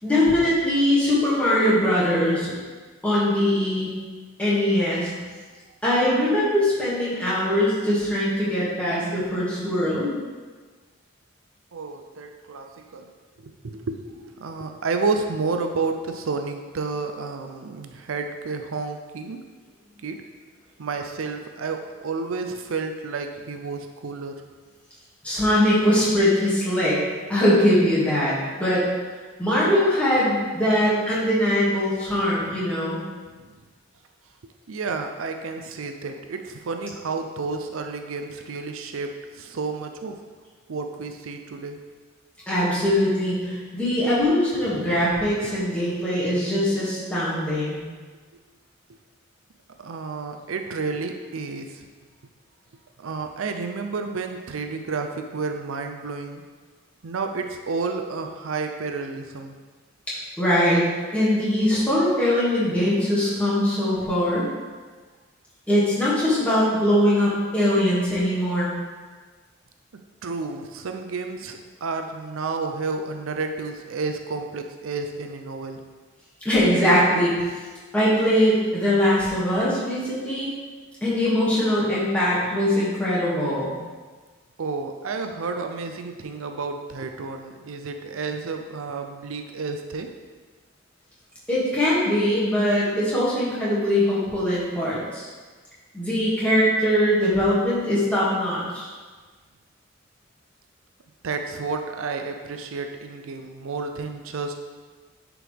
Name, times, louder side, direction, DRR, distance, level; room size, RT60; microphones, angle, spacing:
voice 1, 0.0-2.5 3.0-3.9 4.4-5.1 5.8-10.1 25.2-27.0 27.3-28.8 29.4-33.0 42.5-47.8 60.4-60.8 61.1-64.5 65.7-68.7 76.4-77.3 77.9-80.5 81.0-83.7 91.5-95.3 95.9-98.9, left 1 dB, 5° left, -10 dB, 2.2 m, -21 dB
voice 2, 11.7-13.1 13.4-19.4 20.0-20.2 20.8-24.3 33.3-33.5 34.7-40.2 40.7-41.8 44.5-45.1 49.8-51.9 53.0-56.4 57.0-59.6 70.2-75.8 84.6-90.1 101.2-104.6, right 4 dB, 75° right, 5 dB, 0.5 m, -31 dB
9.9 x 4.6 x 3.5 m, 1.4 s
head